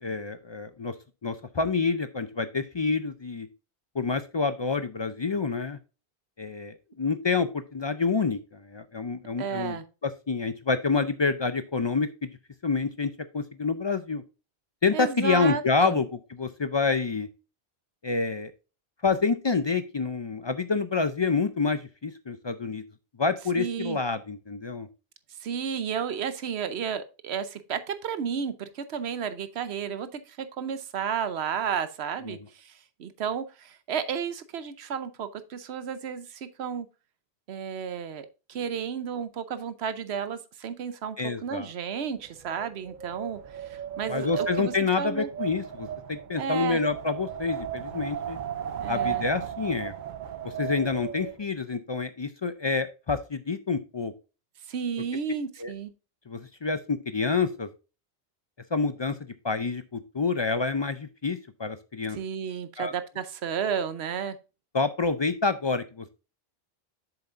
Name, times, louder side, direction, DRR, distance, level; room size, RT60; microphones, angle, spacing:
voice 1, 0.0-0.9 1.2-3.5 3.9-5.8 6.4-12.3 12.6-14.2 14.8-17.3 18.0-18.5 19.0-22.8 23.2-24.9 32.3-32.4 41.2-41.7 44.1-48.4 48.9-49.9 50.4-54.1 55.6-55.7 56.3-57.7 58.7-59.2 59.4-62.2 62.8-62.9 64.7-66.1, left 4 dB, 45° left, 11 dB, 0.3 m, -28 dB
voice 2, 9.4-9.8 14.9-16.0 23.6-24.0 25.4-32.7 33.0-36.9 37.5-44.7 45.0-45.3 46.4-46.8 48.8-49.2 54.7-55.9 62.1-64.4, right 7 dB, 85° right, 12 dB, 1.0 m, -32 dB
Wind, 42.2-51.4, right 9 dB, 55° right, 0.7 m, -35 dB
8.0 x 7.0 x 2.5 m, 0.32 s
omnidirectional pair, 1.1 m